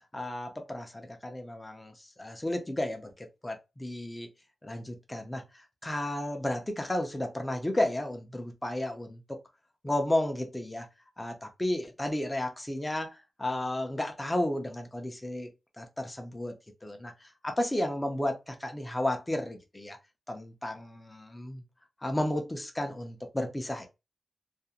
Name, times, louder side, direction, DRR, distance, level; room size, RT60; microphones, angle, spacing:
voice 1, 0.1-4.3 4.6-9.2 9.8-10.9 11.2-15.5 15.8-16.5 16.8-20.0 20.3-21.6 22.0-23.9, left 1 dB, 10° left, 0.4 m, -33 dB
2.4 x 2.0 x 2.7 m
wide cardioid pair, 170°, 0 cm